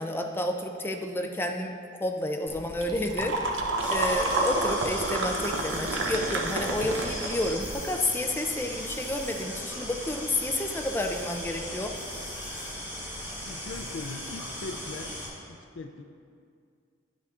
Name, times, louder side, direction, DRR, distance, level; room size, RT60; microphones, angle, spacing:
voice 1, 0.0-1.7 2.0-3.4 3.9-11.9, left 1 dB, 10° left, 3 dB, 0.4 m, -30 dB
sound 1, 2.5-7.7, right 2 dB, 85° right, 0.6 m, -30 dB
sound 2, 3.8-15.3, equal, 15° right, 1.7 m, -37 dB
voice 2, 13.5-15.2 15.5-16.0, left 3 dB, 75° left, 4 dB, 0.4 m, -40 dB
10.5 x 5.9 x 2.5 m, 2.2 s
head